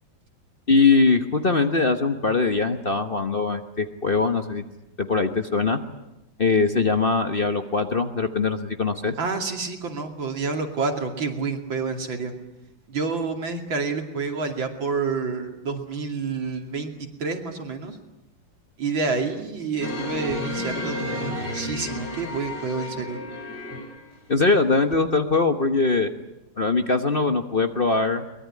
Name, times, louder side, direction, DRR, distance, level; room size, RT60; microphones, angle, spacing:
voice 1, 0.7-4.6 5.0-5.8 6.4-9.1 24.3-26.1 26.6-28.3, left 4 dB, 35° left, 7 dB, 1.2 m, -21 dB
voice 2, 9.2-12.3 12.9-18.0 18.8-23.2, right 4 dB, 75° right, 4 dB, 3.3 m, -28 dB
sound 1, 19.8-24.1 24.9-25.0, left 2 dB, 55° left, 5.6 m, -32 dB
23.0 x 21.5 x 9.9 m, 0.92 s
omnidirectional pair, 2.1 m